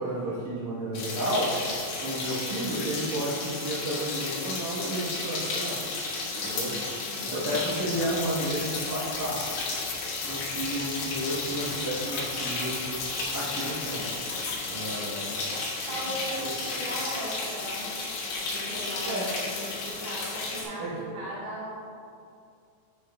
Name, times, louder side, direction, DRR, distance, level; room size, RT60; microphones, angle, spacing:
voice 1, 0.0-1.5 2.0-5.8 6.4-6.7 7.2-9.4 10.2-12.7 13.3-14.1 14.7-15.5 16.1-16.2 16.4-16.5 19.0-19.3 20.8-20.9, right 1 dB, 80° right, -10 dB, 1.7 m, -32 dB
sound 1, 1.0-20.6, left 3 dB, 70° left, 3.2 m, -33 dB
voice 2, 6.3-6.7 7.0-7.5 15.9-17.9 18.3-21.7, right 1 dB, 55° right, -8 dB, 2.0 m, -38 dB
sound 2, 7.9-14.6, left 8 dB, 90° left, 3.2 m, -41 dB
9.9 x 5.7 x 2.3 m, 2.3 s
omnidirectional pair, 5.6 m